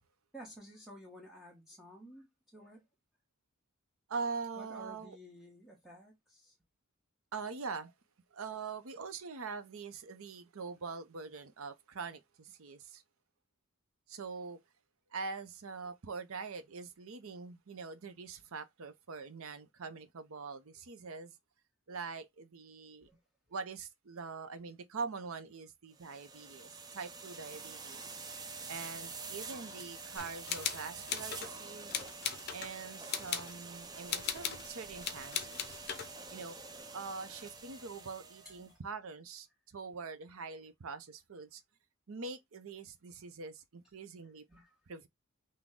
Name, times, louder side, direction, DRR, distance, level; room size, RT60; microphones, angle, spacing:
voice 1, 0.3-2.8 4.6-6.6 23.1-23.2 38.4-38.8 44.5-44.8, equal, ahead, 1.1 m, -53 dB
voice 2, 4.1-5.2 7.3-7.9 8.3-13.0 14.1-14.6 15.1-21.3 21.9-23.1 23.5-28.2 28.7-32.0 32.5-35.9 36.3-36.6 36.9-41.6 42.1-44.5 44.9-45.1, right 4 dB, 75° right, 0.7 m, -43 dB
sound 1, 26.0-38.7, right 4 dB, 20° right, 0.5 m, -47 dB
sound 2, 30.2-31.5 31.9-32.7 33.1-33.5 34.1-34.7 35.0-36.1, left 8 dB, 45° left, 0.7 m, -38 dB
6.1 x 2.2 x 3.6 m
head